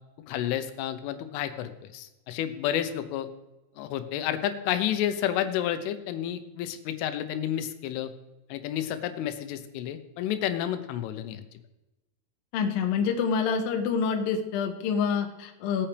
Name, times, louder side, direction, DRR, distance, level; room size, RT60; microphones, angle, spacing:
voice 1, 0.3-3.3 3.8-8.1 8.5-11.4, left 11 dB, 90° left, 9 dB, 3.4 m, -30 dB
voice 2, 12.5-15.9, left 6 dB, 65° left, 3 dB, 2.4 m, -27 dB
18.0 x 8.8 x 3.3 m, 1.0 s
omnidirectional pair, 5.5 m